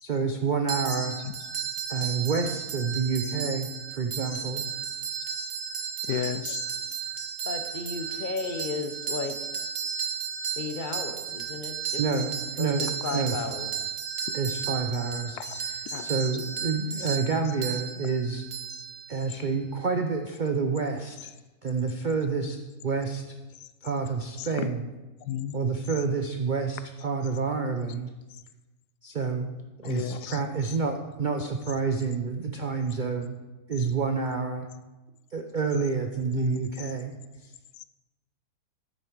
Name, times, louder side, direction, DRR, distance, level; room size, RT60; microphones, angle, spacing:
voice 1, 0.0-1.2 1.9-3.7 4.0-4.7 12.0-13.4 14.3-18.4 19.1-21.2 21.6-22.6 22.8-23.2 23.8-24.9 25.5-28.1 29.0-29.5 29.8-33.3 33.7-34.7 35.3-37.1 37.4-37.5, right 4 dB, 85° right, 5 dB, 0.4 m, -28 dB
sound 1, 0.7-19.5, right 7 dB, 65° right, 1.6 m, -34 dB
voice 2, 6.1-7.0 14.3-14.4 15.4-15.6 15.9-16.0 24.4-24.5 25.3-25.5 29.8-30.4 36.3-36.6 37.8-37.9, left 10 dB, 80° left, 13 dB, 1.1 m, -33 dB
voice 3, 7.4-9.4 10.6-12.3 12.6-13.7 15.9-16.1, left 4 dB, 40° left, 6 dB, 0.8 m, -34 dB
9.7 x 8.5 x 4.6 m, 1.1 s
omnidirectional pair, 1.8 m